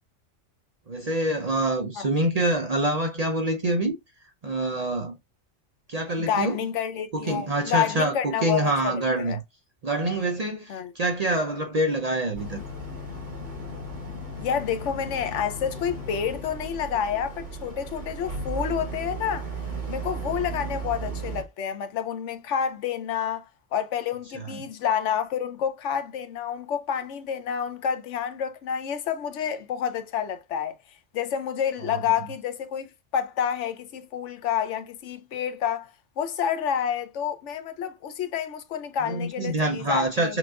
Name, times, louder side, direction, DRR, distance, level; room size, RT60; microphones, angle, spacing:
voice 1, 0.9-4.0 4.4-5.2 5.9-6.6 7.1-9.4 9.8-12.6 24.3-24.6 31.9-32.1 39.1-40.4, right 1 dB, 45° right, 0.5 m, -26 dB
voice 2, 6.2-9.4 10.7-10.9 14.4-19.5 19.9-23.4 23.7-30.8 31.1-35.9 36.2-40.4, left 8 dB, 75° left, 1.0 m, -29 dB
Boat Water vehicle, 12.3-21.4, right 2 dB, 65° right, 2.6 m, -35 dB
5.9 x 2.5 x 2.3 m
omnidirectional pair, 1.2 m